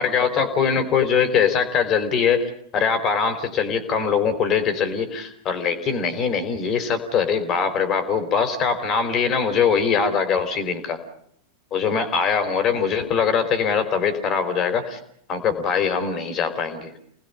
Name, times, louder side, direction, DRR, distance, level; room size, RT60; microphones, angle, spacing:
voice 1, 0.0-11.0 11.7-15.0 15.3-16.9, left 6 dB, 35° left, 10 dB, 3.8 m, -22 dB
29.5 x 20.0 x 5.6 m, 0.67 s
figure-of-eight pair, 90°, 0 cm